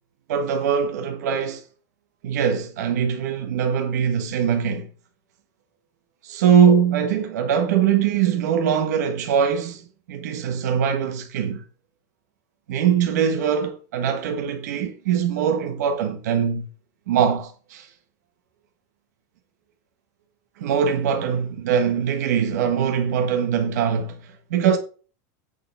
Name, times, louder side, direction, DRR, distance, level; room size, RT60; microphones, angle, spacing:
voice 1, 0.3-1.6 2.2-4.9 6.2-11.6 12.7-16.7 17.1-17.9 20.6-24.8, right 7 dB, 85° right, 1.4 m, -22 dB
8.5 x 4.8 x 5.5 m
supercardioid pair, 180°, 9 cm